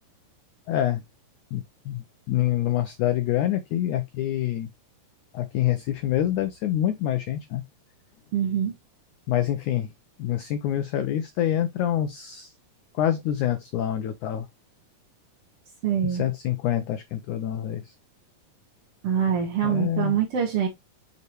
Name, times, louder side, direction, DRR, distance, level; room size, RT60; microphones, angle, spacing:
voice 1, 0.7-1.0 1.5-4.7 5.3-7.6 9.3-9.9 10.2-12.5 12.9-14.5 16.0-17.9 19.6-20.1, left 11 dB, 85° left, 1.7 m, -26 dB
voice 2, 8.3-8.7 15.8-16.3 19.0-20.7, right 8 dB, 55° right, 1.8 m, -24 dB
6.5 x 5.3 x 3.1 m
omnidirectional pair, 4.5 m